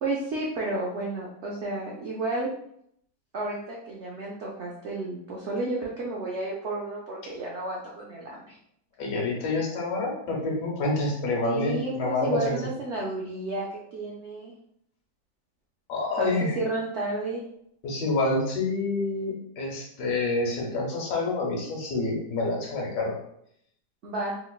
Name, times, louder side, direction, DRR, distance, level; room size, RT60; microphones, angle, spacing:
voice 1, 0.0-2.5 3.3-8.5 11.4-13.7 13.9-14.5 16.2-17.4 24.0-24.3, right 2 dB, 80° right, -3 dB, 0.6 m, -32 dB
voice 2, 9.0-12.6 15.9-16.6 17.8-23.1, left 2 dB, 85° left, -2 dB, 1.5 m, -27 dB
3.2 x 2.9 x 2.3 m, 0.71 s
omnidirectional pair, 1.8 m